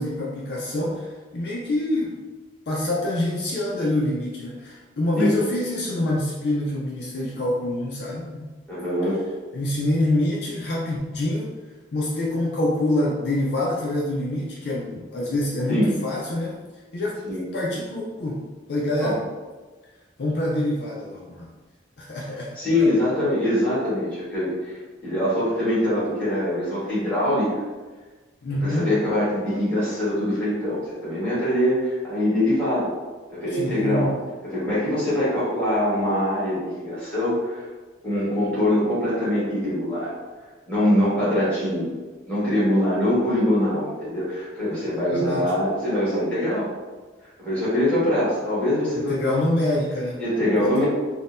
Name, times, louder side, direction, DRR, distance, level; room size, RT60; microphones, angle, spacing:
voice 1, 0.0-2.2 2.7-8.5 9.5-11.5 11.9-16.6 16.9-17.2 17.5-18.4 18.7-19.2 20.2-21.5 22.0-22.6 28.4-28.9 33.5-34.2 45.1-45.4 49.0-50.2 50.6-50.8, left 1 dB, 55° left, -4 dB, 0.4 m, -26 dB
voice 2, 8.7-9.2 15.7-15.9 17.2-17.4 19.0-19.1 22.3-27.6 28.6-32.9 33.3-34.1 34.4-37.7 38.0-40.1 40.7-41.9 42.3-46.7 47.4-49.2 50.2-50.8, left 1 dB, 5° left, -11 dB, 1.3 m, -23 dB
3.7 x 2.1 x 2.5 m, 1.3 s
head